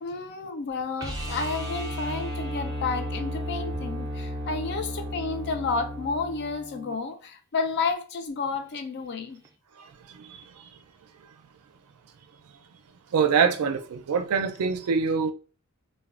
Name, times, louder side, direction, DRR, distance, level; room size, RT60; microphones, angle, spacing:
voice 1, 0.0-9.4, left 4 dB, 50° left, 0.4 m, -31 dB
sound 1, 1.0-7.0 9.4-9.5, equal, 15° right, 0.4 m, -34 dB
voice 2, 9.8-10.4 13.1-15.3, right 6 dB, 90° right, 0.4 m, -25 dB
3.2 x 2.2 x 2.4 m
head